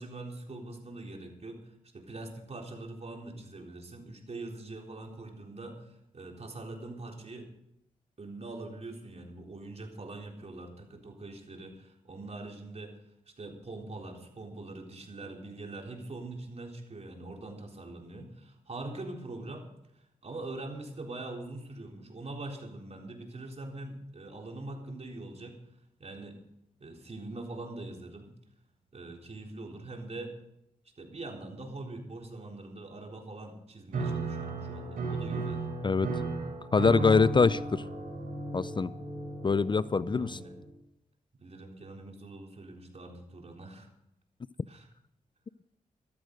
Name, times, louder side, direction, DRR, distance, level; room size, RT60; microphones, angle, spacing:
voice 1, 0.0-7.5 8.2-13.0 13.4-19.7 19.9-25.6 26.0-26.4 26.8-28.3 28.9-30.3 31.0-35.7 40.1-40.6 41.4-43.9 44.7-44.9, right 2 dB, 50° right, 2 dB, 3.9 m, -43 dB
Piano, 33.9-40.7, right 2 dB, 90° right, 3.6 m, -35 dB
voice 2, 36.7-37.8 38.5-38.9 39.4-40.4, left 4 dB, 35° left, 17 dB, 0.5 m, -24 dB
14.5 x 13.0 x 5.3 m, 0.80 s
cardioid pair, 55°, 14 cm